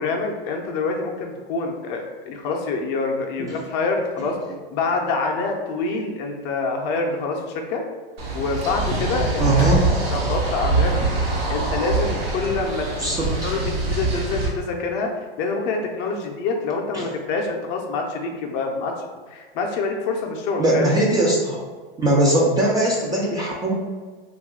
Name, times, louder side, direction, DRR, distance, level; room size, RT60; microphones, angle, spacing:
voice 1, 0.0-4.4 4.7-7.8 8.3-9.7 10.1-11.0 11.5-12.9 13.4-15.1 15.4-20.9, left 3 dB, 35° left, 2 dB, 0.5 m, -26 dB
sound 1, 8.2-14.5, right 3 dB, 80° right, 1.0 m, -24 dB
voice 2, 9.4-9.8 13.0-13.3 16.9-17.0 20.6-21.6 22.0-23.7, right 1 dB, 15° right, -4 dB, 0.4 m, -20 dB
2.7 x 2.4 x 3.5 m, 1.4 s
hypercardioid pair, 115°, 30 cm